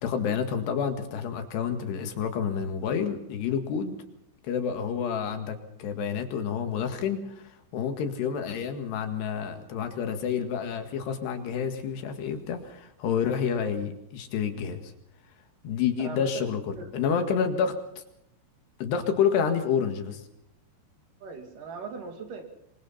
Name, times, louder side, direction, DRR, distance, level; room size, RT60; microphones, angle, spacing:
voice 1, 0.0-4.0 4.4-7.2 7.7-14.8 15.6-17.7 18.8-20.2, left 7 dB, 70° left, 6 dB, 3.9 m, -29 dB
voice 2, 16.0-16.5 16.7-16.9 21.2-22.4, right 4 dB, 50° right, 4 dB, 4.0 m, -39 dB
27.0 x 24.0 x 4.3 m, 0.79 s
omnidirectional pair, 5.2 m